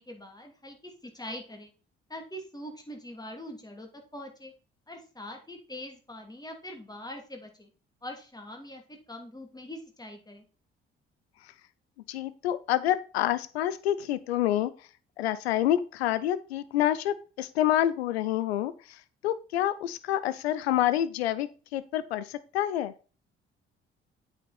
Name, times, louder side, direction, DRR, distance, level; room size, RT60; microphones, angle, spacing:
voice 1, 0.0-1.7 2.1-4.5 4.9-7.7 8.0-10.5, left 1 dB, 10° left, 3 dB, 2.7 m, -43 dB
voice 2, 12.1-14.7 15.2-19.0 19.2-22.9, left 12 dB, 80° left, 15 dB, 0.6 m, -28 dB
8.4 x 6.2 x 4.2 m, 0.35 s
figure-of-eight pair, 45°, 31 cm